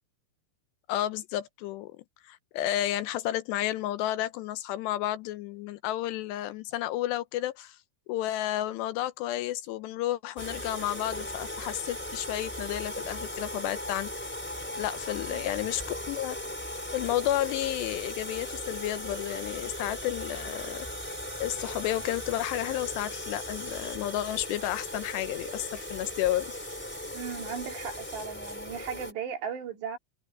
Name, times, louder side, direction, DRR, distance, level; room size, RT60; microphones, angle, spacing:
voice 1, 0.9-2.0 2.2-7.8 8.1-14.3 14.8-16.4 16.9-20.9 21.4-26.6, left 14 dB, 85° left, 2.9 m, -32 dB
sound 1, 10.4-29.1, left 1 dB, 5° left, 3.3 m, -38 dB
voice 2, 27.1-30.0, right 7 dB, 75° right, 5.3 m, -37 dB
omnidirectional pair, 5.0 m